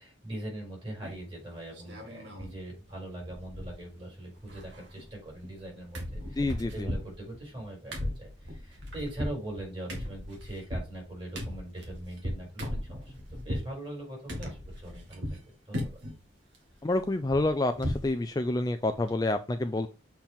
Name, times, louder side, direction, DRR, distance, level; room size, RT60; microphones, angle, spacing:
voice 1, 0.0-16.0, right 1 dB, 25° right, -1 dB, 4.4 m, -41 dB
sound 1, 1.0-1.4 1.7-2.5 2.8-2.9 3.2-4.0 4.3-5.7 5.9-13.7 14.3-15.4 15.7-16.2 16.5-18.1 18.5-18.6 18.9-19.1, equal, 65° right, 2.0 m, -37 dB
voice 2, 6.4-6.9 16.8-19.9, left 2 dB, 20° left, 8 dB, 0.3 m, -28 dB
7.3 x 4.4 x 3.5 m, 0.31 s
head